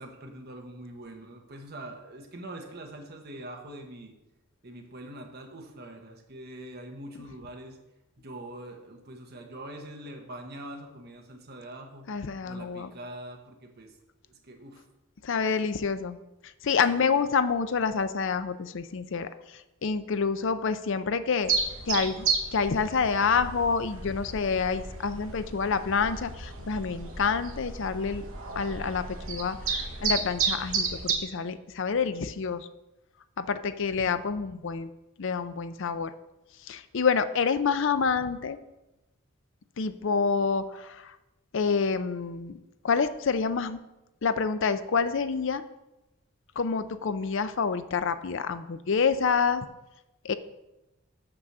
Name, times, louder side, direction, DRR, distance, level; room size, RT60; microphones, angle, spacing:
voice 1, 0.0-4.1 4.6-7.8 8.2-12.1 12.4-14.0 14.3-14.9 16.9-17.3, right 1 dB, 50° right, 3 dB, 1.1 m, -43 dB
voice 2, 12.1-12.9 15.2-16.2 16.6-21.6 21.9-22.3 22.5-28.2 28.6-32.7 33.4-34.9 35.2-36.1 36.6-38.6 39.8-41.2 41.5-42.6 42.8-43.8 44.2-45.6 46.6-49.7 50.2-50.3, left 5 dB, 60° left, 12 dB, 0.5 m, -28 dB
sound 1, 21.4-31.2, right 5 dB, 70° right, 1.1 m, -32 dB
6.3 x 5.9 x 6.6 m, 0.96 s
head